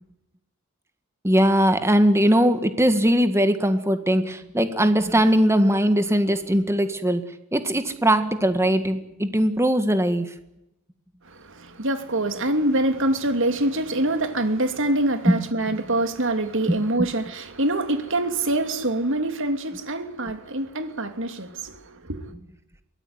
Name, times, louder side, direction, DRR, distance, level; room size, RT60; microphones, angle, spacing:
voice 1, 1.2-7.2 7.5-10.3 15.3-15.4 15.7-15.8 16.7-17.1, equal, 10° right, 1.9 m, -20 dB
voice 2, 11.2-22.2, right 1 dB, 60° right, 2.8 m, -25 dB
23.5 x 18.5 x 9.7 m
head